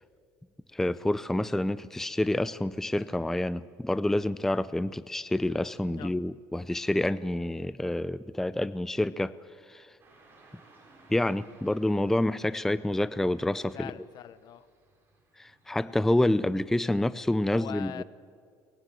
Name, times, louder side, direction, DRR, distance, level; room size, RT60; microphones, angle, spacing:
voice 1, 0.7-9.3 9.7-9.9 11.1-13.9 15.4-18.0, left 1 dB, 5° left, 16 dB, 0.5 m, -28 dB
Car passing by / Traffic noise roadway noise, 10.0-16.8, right 2 dB, 30° right, 7.4 m, -61 dB
voice 2, 13.7-14.7 17.5-18.0, left 11 dB, 55° left, 16 dB, 0.9 m, -42 dB
23.0 x 20.5 x 7.9 m, 2.2 s
cardioid pair, 115°, 8 cm